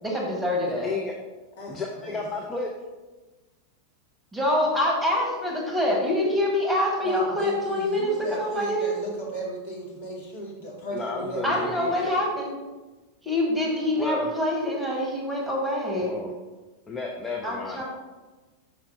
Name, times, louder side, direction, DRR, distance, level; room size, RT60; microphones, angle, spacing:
voice 1, 0.0-0.9 4.3-9.0 11.4-12.6 13.2-16.1 17.4-17.8, left 1 dB, 5° right, -2 dB, 1.4 m, -25 dB
voice 2, 0.8-1.1 1.7-2.7 10.9-12.2 13.9-14.3 16.0-16.3 16.9-17.8, left 3 dB, 15° left, 0 dB, 0.6 m, -32 dB
voice 3, 1.6-2.2 7.0-12.0, equal, 55° left, -3 dB, 2.0 m, -36 dB
5.6 x 4.8 x 3.9 m, 1.2 s
figure-of-eight pair, 90°, 0 cm